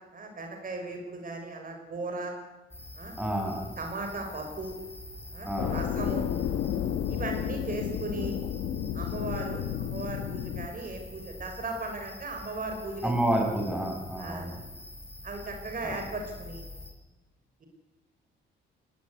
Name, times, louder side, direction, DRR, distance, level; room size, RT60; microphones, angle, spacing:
voice 1, 0.1-2.3 3.0-3.2 3.8-4.8 5.3-6.2 7.1-8.3 8.9-13.1 14.2-14.5 15.2-16.6 17.6-17.7, right 2 dB, 45° right, 4 dB, 5.3 m, -37 dB
sound 1, 2.7-16.9, left 1 dB, 10° left, 5.5 m, -45 dB
voice 2, 3.2-3.7 5.4-5.8 13.0-14.6 15.8-15.9, right 1 dB, 5° right, 2 dB, 6.6 m, -29 dB
sound 2, 5.6-10.7, left 10 dB, 85° left, 1.2 m, -32 dB
20.5 x 17.5 x 9.7 m, 1.1 s
cardioid pair, 90°, 20 cm